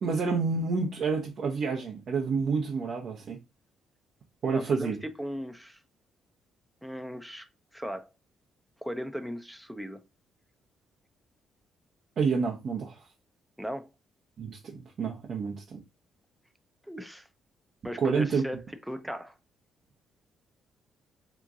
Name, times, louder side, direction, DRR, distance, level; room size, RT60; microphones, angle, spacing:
voice 1, 0.0-3.4 4.4-5.0 12.2-13.1 14.4-15.8 18.0-18.4, right 5 dB, 60° right, 0.7 m, -29 dB
voice 2, 4.5-5.8 6.8-7.5 7.7-8.1 8.8-10.0 13.6-13.9 16.9-17.3 17.8-18.6 18.9-19.3, equal, ahead, 0.4 m, -37 dB
3.5 x 3.0 x 2.4 m
cardioid pair, 90°, 0 cm